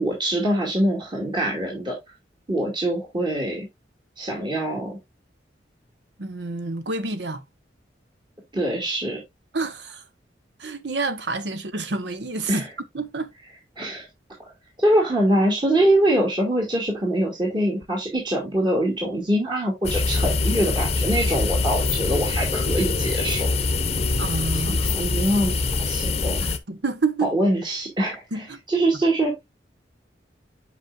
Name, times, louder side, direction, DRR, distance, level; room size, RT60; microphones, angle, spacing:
voice 1, 0.0-2.0 2.5-3.7 4.2-5.0 8.5-9.2 12.5-12.6 13.8-14.1 14.8-23.5 24.7-26.5 27.2-28.2 28.7-29.4, right 1 dB, 25° right, 2.3 m, -23 dB
voice 2, 6.2-7.4 9.5-10.0 10.6-12.7 12.9-13.3 24.2-24.9 26.4-27.3 28.3-28.6, right 3 dB, 70° right, 1.0 m, -28 dB
sound 1, 19.8-26.6, left 3 dB, 35° left, 0.7 m, -24 dB
8.1 x 5.2 x 2.4 m
head